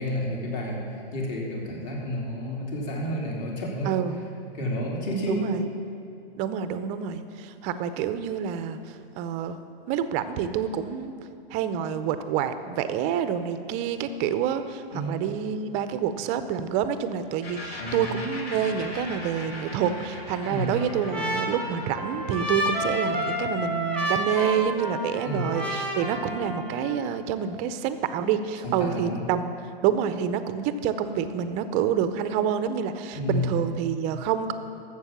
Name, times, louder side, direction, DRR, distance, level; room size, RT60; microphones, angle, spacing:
voice 1, 0.0-4.0 4.5-5.5 14.9-15.1 17.8-18.1 20.4-20.8 25.2-25.5 28.6-29.2 33.1-33.5, equal, 45° left, -2 dB, 3.1 m, -30 dB
voice 2, 3.8-4.2 5.3-5.7 6.4-9.6 9.9-11.1 11.5-29.5 29.8-34.5, right 8 dB, 25° right, 11 dB, 0.5 m, -28 dB
sound 1, 17.4-24.9, left 2 dB, 70° left, 3.1 m, -40 dB
Trumpet, 20.3-27.0, equal, 5° left, 1.3 m, -30 dB
12.0 x 7.5 x 7.1 m, 2.6 s
hypercardioid pair, 140°, 31 cm